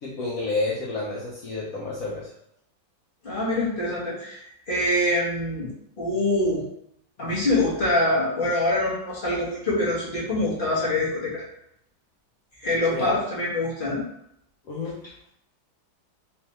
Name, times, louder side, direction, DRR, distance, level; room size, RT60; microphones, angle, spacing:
voice 1, 0.0-2.3 12.9-13.1 14.6-15.0, left 3 dB, 65° left, -5 dB, 0.8 m, -30 dB
voice 2, 3.2-5.7 6.0-6.6 7.2-11.4 12.6-14.0, left 1 dB, 35° left, -7 dB, 0.9 m, -25 dB
3.4 x 3.1 x 3.0 m, 0.76 s
omnidirectional pair, 2.1 m